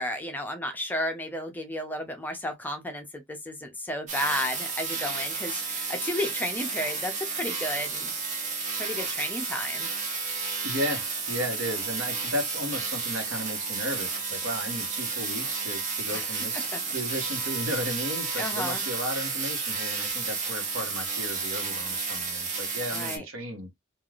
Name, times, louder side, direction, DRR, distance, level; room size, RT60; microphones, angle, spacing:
voice 1, 0.0-8.1 8.8-9.9 16.1-16.3 16.7-16.8 18.4-18.8 22.9-23.2, left 1 dB, 10° left, 0.5 m, -33 dB
sound 1, 4.1-23.2, right 4 dB, 35° right, 0.9 m, -32 dB
voice 2, 10.6-16.6 16.9-23.7, equal, 80° right, 1.1 m, -34 dB
3.3 x 2.4 x 2.3 m
head